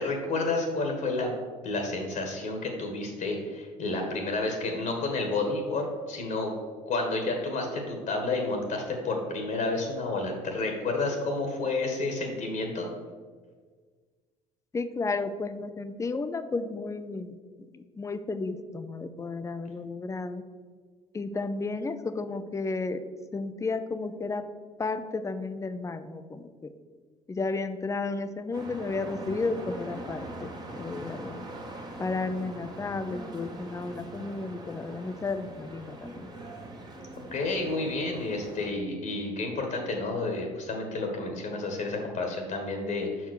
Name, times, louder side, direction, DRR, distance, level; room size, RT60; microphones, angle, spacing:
voice 1, 0.0-1.3 1.6-6.5 6.8-12.9 37.3-43.3, left 3 dB, 55° left, 3 dB, 1.6 m, -30 dB
voice 2, 14.7-20.4 21.1-23.0 23.3-24.5 24.8-26.7 27.3-31.5 32.0-36.3, left 3 dB, 20° left, 11 dB, 0.6 m, -33 dB
sound 1, 28.5-38.7, right 2 dB, 25° right, 1.4 m, -42 dB
5.6 x 4.7 x 6.4 m, 1.5 s
supercardioid pair, 75°, 15 cm